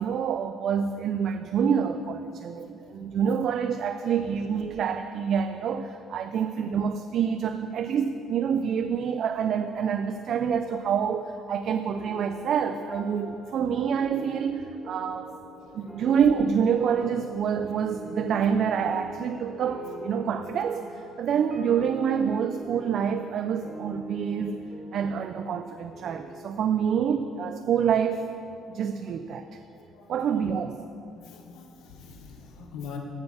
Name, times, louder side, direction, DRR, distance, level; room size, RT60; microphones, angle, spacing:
voice 1, 0.0-15.3 15.7-24.6 24.9-28.3 28.7-29.6 30.1-30.8, right 7 dB, 60° right, 8 dB, 0.4 m, -27 dB
sound 1, 11.9-28.7, right 1 dB, ahead, 2.4 m, -43 dB
voice 2, 29.8-30.5 31.1-33.0, left 6 dB, 80° left, 2 dB, 1.1 m, -44 dB
8.0 x 6.8 x 7.0 m, 2.6 s
cardioid pair, 90°, 0 cm